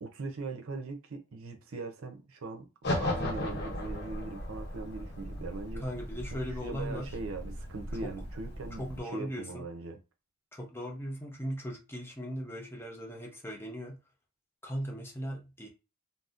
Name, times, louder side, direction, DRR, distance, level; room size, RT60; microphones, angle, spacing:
voice 1, 0.0-2.7 3.0-5.8 6.6-8.8 9.1-10.0, right 3 dB, 70° right, 0.6 m, -40 dB
sound 1, 2.8-9.0, left 1 dB, 50° left, 0.8 m, -37 dB
voice 2, 5.8-7.2 8.0-8.1 8.8-9.7 10.5-14.0 14.6-15.7, equal, 10° left, 0.5 m, -38 dB
4.0 x 2.0 x 2.4 m
head